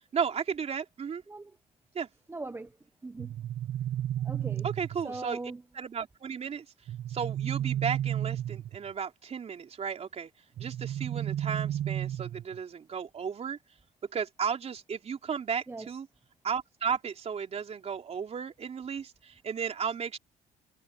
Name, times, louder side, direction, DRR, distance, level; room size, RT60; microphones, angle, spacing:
voice 1, 0.1-1.2 1.9-2.1 4.6-5.4 5.7-6.7 7.1-10.3 10.6-13.6 14.1-16.1 16.4-20.2, right 6 dB, 40° right, 3.8 m, -34 dB
voice 2, 2.3-2.7 3.0-3.3 4.2-4.7 5.0-5.6 15.7-15.9, right 2 dB, 15° right, 1.1 m, -39 dB
sound 1, 3.2-5.2 6.9-8.9 10.6-12.6, right 11 dB, 60° right, 1.0 m, -33 dB
cardioid pair, 110°, 17 cm